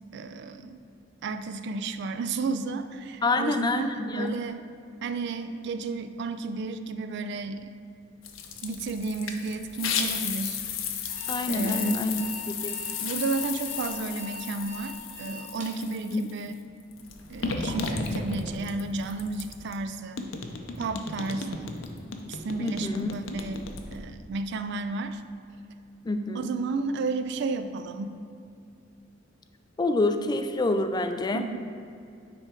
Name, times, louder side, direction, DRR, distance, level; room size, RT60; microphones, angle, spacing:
voice 1, 0.1-0.8 1.2-4.6 5.0-7.7 8.6-10.6 11.5-12.0 13.0-16.5 17.3-20.3 20.8-21.8 22.2-25.2 26.3-28.2 31.3-31.6, right 3 dB, 60° right, 9 dB, 0.4 m, -32 dB
voice 2, 3.2-4.4 11.3-12.8 16.1-16.3 22.6-23.2 26.0-26.5 29.8-31.4, left 2 dB, 20° left, 8 dB, 0.3 m, -27 dB
sound 1, 8.2-16.4 16.9-19.8 20.2-24.1, left 5 dB, 90° left, 0.6 m, -34 dB
Alarm, 11.1-15.8, equal, 40° right, 1.3 m, -43 dB
9.9 x 3.5 x 4.4 m, 2.5 s
head